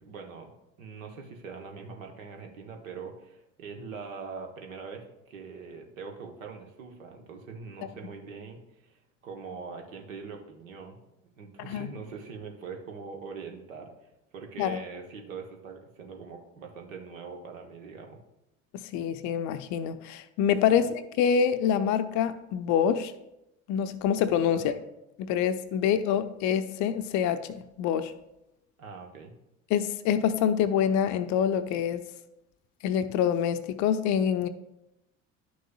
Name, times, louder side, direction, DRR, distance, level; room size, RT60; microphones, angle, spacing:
voice 1, 0.0-11.0 11.4-18.2 20.7-20.9 24.5-24.8 28.8-29.3, right 5 dB, 70° right, 1.1 m, -43 dB
voice 2, 18.9-23.1 23.7-24.7 25.2-28.1 29.7-32.0 32.8-34.5, left 8 dB, 45° left, 0.5 m, -26 dB
11.5 x 6.2 x 2.3 m
figure-of-eight pair, 60°, 41 cm